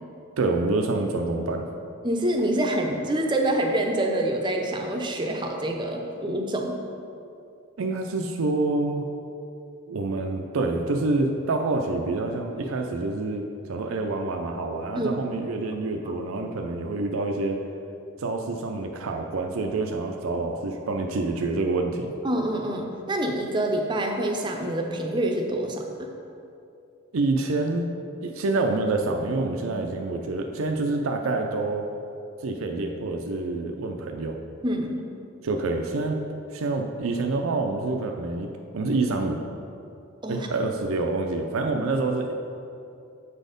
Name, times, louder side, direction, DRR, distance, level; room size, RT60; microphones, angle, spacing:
voice 1, 0.4-1.7 7.8-9.1 9.9-17.6 18.2-22.1 27.1-27.9 28.2-31.9 32.4-34.4 35.4-36.2 36.5-39.4 40.3-42.3, right 3 dB, 75° right, 3 dB, 0.5 m, -27 dB
voice 2, 2.0-6.8 14.9-15.1 16.1-16.2 22.2-26.1 34.6-35.0 40.2-40.5, right 1 dB, 20° right, 2 dB, 0.6 m, -26 dB
7.3 x 4.2 x 5.1 m, 2.6 s
head